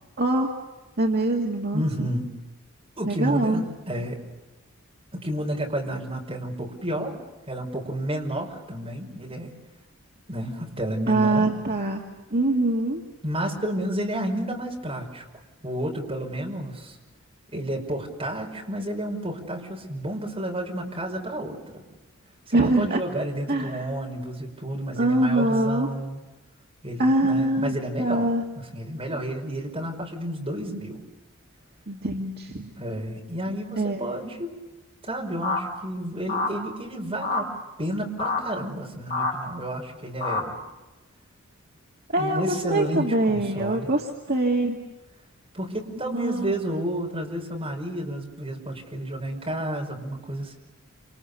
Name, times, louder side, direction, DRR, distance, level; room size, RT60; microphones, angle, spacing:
voice 1, 0.2-0.5 1.0-2.1 3.1-3.6 11.1-13.0 22.5-23.0 23.5-23.8 25.0-25.9 27.0-28.4 31.9-32.7 33.8-34.1 42.1-44.8 46.1-46.5, right 2 dB, 45° right, 0 dB, 2.3 m, -24 dB
voice 2, 1.7-2.4 3.0-4.2 5.1-7.2 7.5-9.5 10.3-11.5 13.2-15.2 15.6-17.0 17.5-21.8 22.5-26.2 26.8-31.1 32.8-34.5 35.0-37.5 37.8-40.6 42.1-43.9 45.5-50.6, right 1 dB, 25° right, 0 dB, 5.5 m, -31 dB
sound 1, 35.4-35.6 36.3-36.5 37.2-37.4 38.2-38.4 39.1-39.3 40.2-40.4, left 3 dB, 40° left, 5.7 m, -26 dB
28.5 x 28.0 x 6.9 m, 1.1 s
head